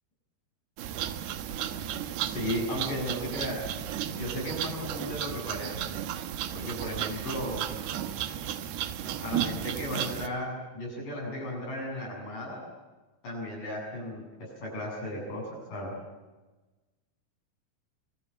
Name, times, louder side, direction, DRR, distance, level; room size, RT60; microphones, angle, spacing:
sound 1, 0.8-10.3, right 10 dB, 90° right, 3.3 m, -34 dB
voice 1, 2.2-3.7 4.2-5.8 6.5-7.7 9.2-12.6 13.2-15.9, left 1 dB, 55° left, -1 dB, 9.6 m, -35 dB
26.0 x 21.5 x 8.5 m, 1.2 s
omnidirectional pair, 4.4 m